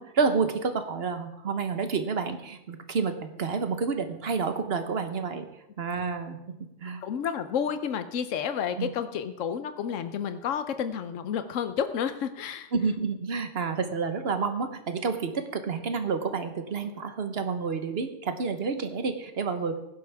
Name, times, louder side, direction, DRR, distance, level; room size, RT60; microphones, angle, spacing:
voice 1, 0.0-5.5 5.8-6.4 6.8-7.0 8.8-8.9 12.7-19.8, right 5 dB, 55° right, 8 dB, 1.3 m, -29 dB
voice 2, 7.0-12.7, left 8 dB, 80° left, 10 dB, 1.1 m, -30 dB
15.5 x 11.5 x 3.5 m, 0.87 s
omnidirectional pair, 1.3 m